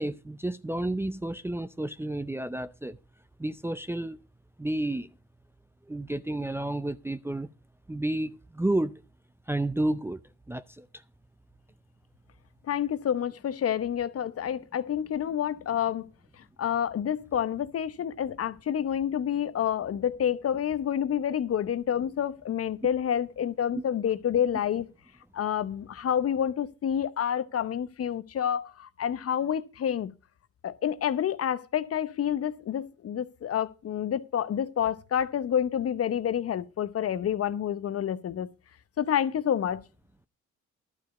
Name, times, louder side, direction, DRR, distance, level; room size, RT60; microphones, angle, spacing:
voice 1, 0.0-3.0 3.4-4.2 4.6-5.1 5.9-7.5 7.9-8.9 9.5-10.2 10.5-10.9, right 1 dB, 10° right, 0.5 m, -31 dB
voice 2, 12.7-16.1 16.6-24.9 25.3-30.1 30.6-38.5 39.0-39.8, left 9 dB, 50° left, 0.8 m, -28 dB
12.0 x 4.8 x 8.1 m
cardioid pair, 90°, 30 cm